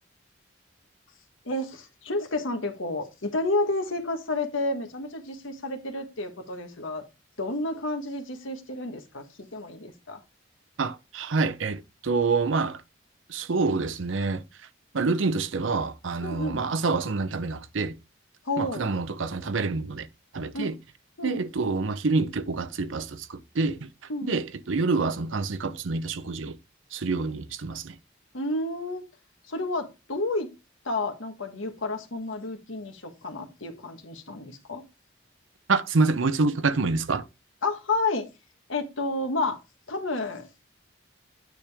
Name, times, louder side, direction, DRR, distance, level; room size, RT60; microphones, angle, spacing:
voice 1, 1.4-7.0 7.4-9.2 9.5-10.2 16.2-16.6 18.4-18.9 20.5-20.7 21.2-21.4 24.1-24.3 28.3-29.0 29.5-30.5 30.8-34.8 37.6-38.3 38.7-39.6 39.9-40.7, left 2 dB, 85° left, 1.4 m, -30 dB
voice 2, 10.8-12.8 13.3-14.4 14.9-18.0 18.6-20.1 20.3-20.8 21.2-23.9 24.2-26.6 26.9-28.0 35.7-37.3, right 3 dB, 75° right, 0.7 m, -27 dB
9.2 x 5.1 x 3.5 m
head